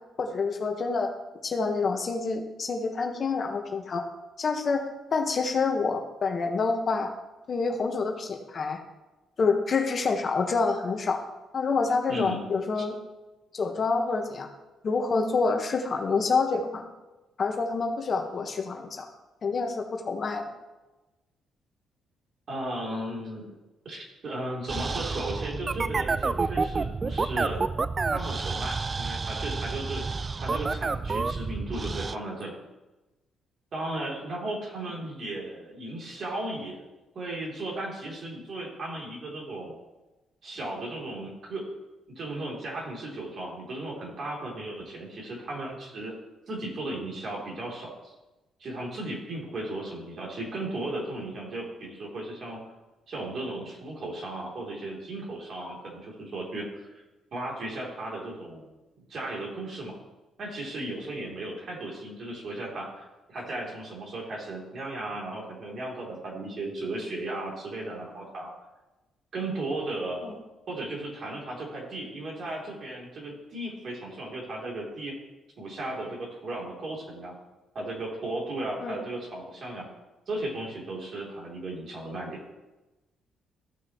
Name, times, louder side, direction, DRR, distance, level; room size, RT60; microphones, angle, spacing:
voice 1, 0.2-1.1 1.4-4.0 4.4-7.1 7.5-8.8 9.4-11.2 11.5-13.0 13.5-14.5 14.8-16.9 17.4-19.1 19.4-20.4 70.2-70.3 78.8-78.9, left 4 dB, 45° left, 3 dB, 1.3 m, -27 dB
voice 2, 22.5-23.5 23.8-27.6 28.1-30.1 30.4-32.6 33.7-36.8 37.1-39.7 40.4-41.6 42.1-46.1 46.5-48.1 48.6-52.6 53.1-57.0 57.3-58.7 59.0-60.0 60.4-68.5 69.3-70.3 70.7-75.2 75.6-77.3 77.7-79.9 80.3-82.4, right 2 dB, 55° right, -3 dB, 3.2 m, -35 dB
sound 1, 24.7-32.2, right 4 dB, 35° right, 0.3 m, -29 dB
15.0 x 5.9 x 3.1 m, 1.1 s
cardioid pair, 90°, 0 cm